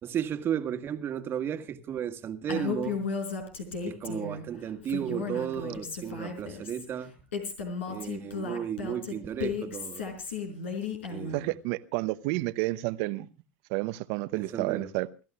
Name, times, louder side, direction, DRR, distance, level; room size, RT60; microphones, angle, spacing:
voice 1, 0.0-3.1 3.8-7.1 7.9-10.0 11.1-11.5 14.3-14.9, right 9 dB, 35° right, 1.8 m, -34 dB
Female speech woman speaking, 2.5-4.4 4.8-6.8 7.3-11.4, left 5 dB, 75° left, 4.8 m, -34 dB
voice 2, 11.3-13.3 13.7-15.1, right 20 dB, 55° right, 0.9 m, -30 dB
29.0 x 14.0 x 2.4 m
hypercardioid pair, 85°, 7 cm